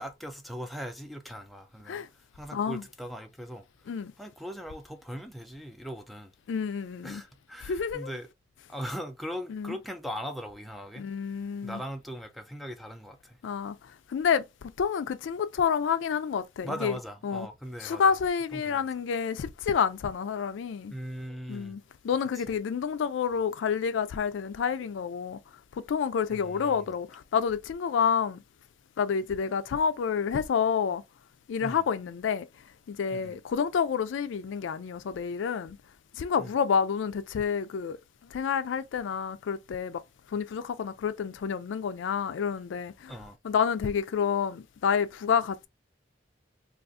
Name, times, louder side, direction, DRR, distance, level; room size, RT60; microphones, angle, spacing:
voice 1, 0.0-3.9 4.2-6.3 7.0-8.3 8.7-11.0 11.6-13.4 16.6-18.2 18.5-18.9 20.9-21.8 22.3-22.6 26.3-26.9 31.6-31.8 33.1-33.4 36.4-36.5 43.1-43.4, equal, ahead, 0.4 m, -40 dB
voice 2, 6.5-7.2 7.6-8.1 9.5-9.7 11.0-11.8 13.4-13.8 14.1-16.9 17.2-17.5 17.8-20.9 21.5-25.4 25.8-28.4 29.0-31.0 31.5-32.5 32.9-35.8 36.1-38.0 38.3-40.0 40.3-43.1 43.4-45.7, left 6 dB, 85° left, 0.3 m, -29 dB
3.5 x 2.4 x 2.5 m
head